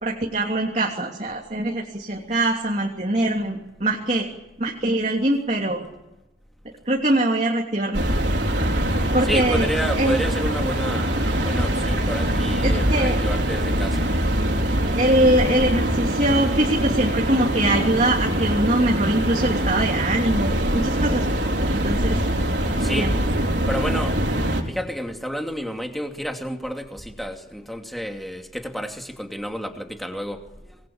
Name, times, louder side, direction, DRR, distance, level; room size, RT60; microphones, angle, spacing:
voice 1, 0.0-4.3 4.6-5.8 6.9-8.1 8.6-8.7 9.1-9.7 9.9-10.2 12.6-13.2 14.9-21.3 21.7-22.2 23.0-23.1, right 1 dB, 35° right, 0 dB, 3.1 m, -22 dB
sound 1, 7.9-24.6, right 1 dB, 65° right, 4.7 m, -23 dB
voice 2, 9.3-14.2 22.8-23.2 23.7-24.2 24.7-30.8, equal, ahead, 3 dB, 2.6 m, -30 dB
26.5 x 21.0 x 8.9 m, 0.98 s
head